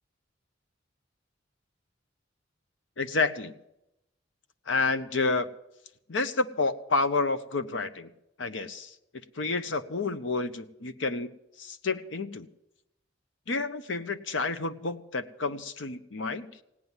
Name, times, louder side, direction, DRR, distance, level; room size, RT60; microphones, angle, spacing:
voice 1, 3.0-3.5 4.7-5.5 6.1-8.1 8.4-8.9 9.4-11.3 11.6-12.5 13.5-16.5, left 3 dB, 80° left, 11 dB, 0.9 m, -29 dB
17.0 x 9.7 x 7.3 m, 0.86 s
head